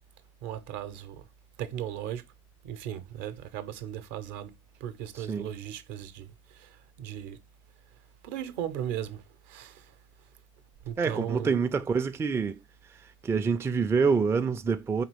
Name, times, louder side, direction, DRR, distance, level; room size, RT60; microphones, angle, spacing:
voice 1, 0.4-1.3 1.6-2.2 2.6-4.5 4.8-7.4 8.2-9.9 10.8-11.6, right 10 dB, 60° right, 0.7 m, -37 dB
voice 2, 5.2-5.5 11.0-12.6 13.0-15.0, right 5 dB, 15° right, 0.4 m, -27 dB
5.0 x 3.0 x 3.0 m
hypercardioid pair, 80°, 16 cm